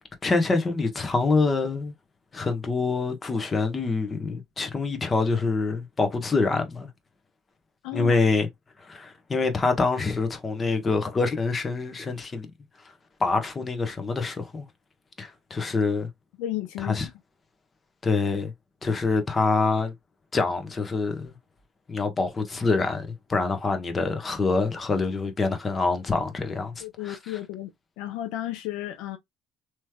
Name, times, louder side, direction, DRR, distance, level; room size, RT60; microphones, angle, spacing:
voice 1, 0.2-1.9 2.3-6.9 7.9-8.5 8.8-12.5 13.2-14.7 15.2-16.1 16.8-17.1 18.0-18.5 18.8-19.9 20.3-21.4 21.9-27.2, left 3 dB, 30° left, 1.1 m, -25 dB
voice 2, 7.8-8.1 16.4-17.0 26.8-27.7 28.0-29.2, left 14 dB, 85° left, 0.6 m, -33 dB
3.1 x 3.1 x 2.2 m
supercardioid pair, 85°, 0 cm